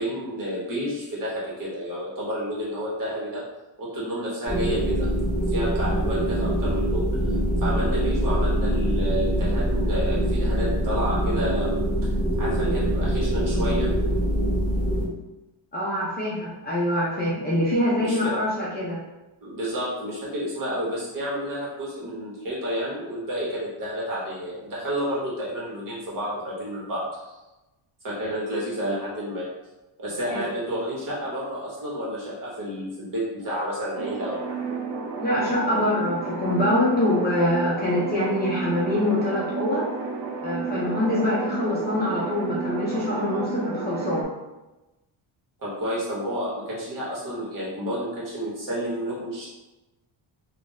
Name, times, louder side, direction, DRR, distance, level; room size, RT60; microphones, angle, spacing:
voice 1, 0.0-3.4 3.8-5.1 5.5-7.3 7.6-11.8 12.4-13.9 17.9-18.3 19.4-27.3 28.0-29.5 30.0-34.5 45.6-49.5, equal, 45° right, -6 dB, 1.2 m, -30 dB
sound 1, 4.5-15.0, equal, 15° right, 1.0 m, -24 dB
voice 2, 15.7-19.0 30.3-30.4 35.2-39.9 40.4-44.3, left 1 dB, 20° left, -7 dB, 0.5 m, -24 dB
sound 2, 33.9-44.2, right 5 dB, 70° right, 0.6 m, -32 dB
2.5 x 2.5 x 3.9 m, 1.0 s
cardioid pair, 175°, 46 cm